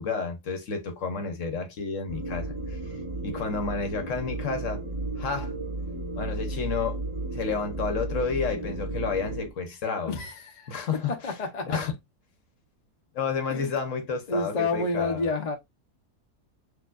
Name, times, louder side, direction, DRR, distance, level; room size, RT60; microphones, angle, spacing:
voice 1, 0.0-3.0 3.2-4.8 5.2-5.5 6.2-7.0 7.3-10.1 10.7-11.3 11.6-11.9 13.1-15.3, left 5 dB, 55° left, 1.1 m, -31 dB
sound 1, 2.1-9.5, right 2 dB, 20° right, 1.3 m, -34 dB
voice 2, 10.1-10.7 11.2-11.8 13.5-13.7 14.3-15.6, left 3 dB, 40° left, 0.6 m, -29 dB
6.4 x 2.7 x 2.4 m
omnidirectional pair, 1.7 m